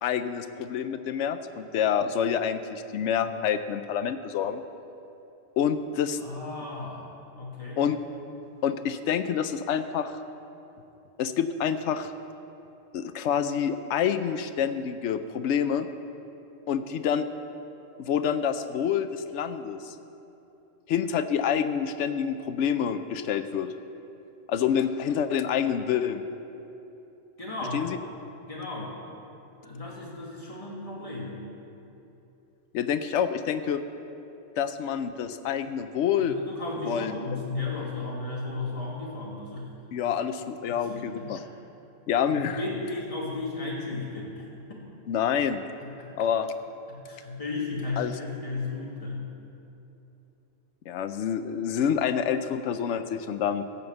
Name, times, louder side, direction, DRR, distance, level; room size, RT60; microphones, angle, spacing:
voice 1, 0.0-4.6 5.6-6.2 7.8-8.0 8.6-10.2 11.2-12.1 12.9-15.9 16.7-17.3 18.0-20.0 20.9-23.7 24.5-26.2 27.7-28.0 32.7-33.8 34.6-36.4 36.8-37.2 39.9-41.4 42.1-42.6 45.1-45.6 46.1-46.5 48.0-48.2 50.9-53.6, left 8 dB, 70° left, 10 dB, 0.9 m, -27 dB
voice 2, 6.2-7.0 7.3-7.9 27.4-27.9 28.5-29.0 29.6-31.4 36.2-39.7 40.8-41.4 42.3-44.8 46.0-46.1 46.9-49.3, left 3 dB, 25° left, -4 dB, 2.2 m, -34 dB
15.0 x 5.4 x 7.8 m, 2.9 s
omnidirectional pair, 1.3 m